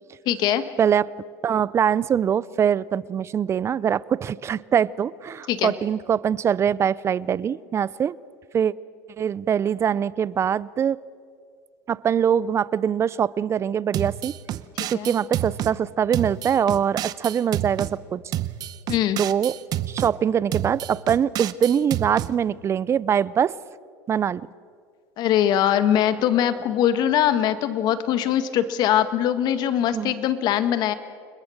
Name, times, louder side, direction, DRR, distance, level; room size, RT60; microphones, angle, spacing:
voice 1, 0.2-0.6 5.5-5.7 14.8-15.1 18.9-19.2 25.2-30.9, left 10 dB, 55° left, 11 dB, 1.7 m, -22 dB
voice 2, 0.8-1.1 1.4-8.2 8.5-8.7 9.2-11.0 11.9-14.3 14.9-18.2 19.2-19.5 19.9-23.5 24.1-24.5 29.9-30.1, right 8 dB, 35° right, 21 dB, 0.6 m, -23 dB
sound 1, 13.9-15.7 16.1-17.9 18.3-20.1 20.5-22.3, right 13 dB, 50° right, 0.9 m, -29 dB
30.0 x 21.0 x 6.5 m, 2.2 s
supercardioid pair, 100°, 8 cm